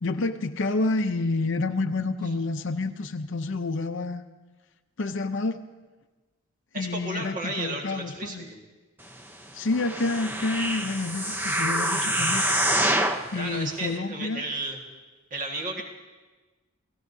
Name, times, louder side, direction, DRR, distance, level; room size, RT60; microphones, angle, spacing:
voice 1, 0.0-4.2 5.0-5.6 6.7-8.5 9.5-12.5 13.3-14.5, left 3 dB, 60° left, 8 dB, 0.6 m, -28 dB
voice 2, 6.7-8.6 13.3-14.8 15.3-15.8, right 2 dB, 40° right, 1 dB, 1.7 m, -33 dB
sound 1, 9.7-13.3 13.9-14.0, right 1 dB, 10° right, 0.7 m, -26 dB
29.5 x 17.5 x 2.7 m, 1.2 s
head